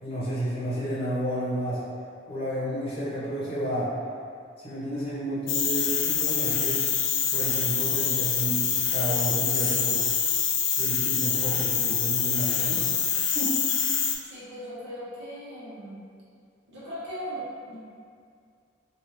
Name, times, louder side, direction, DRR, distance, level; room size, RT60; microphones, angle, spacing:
voice 1, 0.0-1.8 2.3-3.9 4.6-6.8 7.3-10.0 10.8-12.8 13.3-13.6, equal, 30° left, -10 dB, 0.8 m, -31 dB
sound 1, 5.5-14.2, left 7 dB, 75° left, 0.4 m, -25 dB
voice 2, 14.3-16.0 16.7-17.7, equal, 60° right, -10 dB, 1.0 m, -38 dB
3.3 x 2.4 x 3.1 m, 2.2 s
head